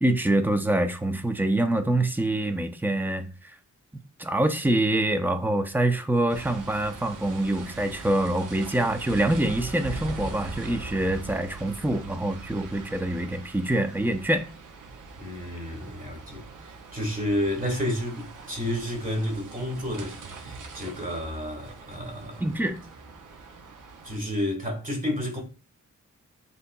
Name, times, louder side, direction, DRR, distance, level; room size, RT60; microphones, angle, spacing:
voice 1, 0.0-3.6 4.2-14.5 22.4-22.8, right 1 dB, 5° right, 0.5 m, -25 dB
sound 1, 6.3-24.2, right 3 dB, 85° right, 0.8 m, -42 dB
voice 2, 15.2-16.4 16.9-22.4 24.0-25.4, left 1 dB, 30° right, 1.7 m, -30 dB
7.9 x 2.8 x 2.2 m
wide cardioid pair, 115°, 30 cm